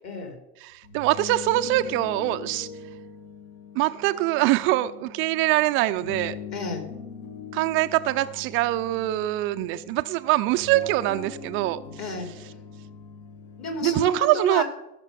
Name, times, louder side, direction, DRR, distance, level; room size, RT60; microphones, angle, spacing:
voice 1, 0.0-0.4 6.5-6.8 12.0-12.3 13.6-14.6, left 3 dB, 35° left, 4 dB, 3.8 m, -31 dB
sound 1, 0.7-14.1, left 6 dB, 55° left, 2.6 m, -42 dB
voice 2, 0.7-2.7 3.8-6.4 7.5-11.8 13.8-14.6, right 17 dB, 30° right, 10 dB, 0.4 m, -23 dB
16.5 x 6.6 x 6.8 m, 0.92 s
hypercardioid pair, 115°, 46 cm